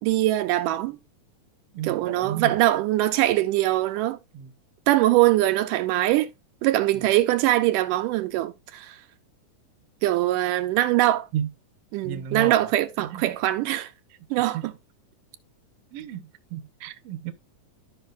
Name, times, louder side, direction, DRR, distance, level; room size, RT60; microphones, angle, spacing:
voice 1, 0.0-1.0 1.8-4.2 4.9-6.3 6.6-9.0 10.0-11.3 11.9-13.9 14.3-14.7 16.8-16.9, right 15 dB, 85° right, 2.2 m, -22 dB
voice 2, 1.7-2.6 4.3-4.5 6.9-7.1 11.3-11.5 12.0-12.7 13.0-13.4 14.5-14.6 15.9-16.7 17.0-17.3, right 9 dB, 65° right, 1.6 m, -32 dB
13.5 x 5.5 x 2.5 m
omnidirectional pair, 3.8 m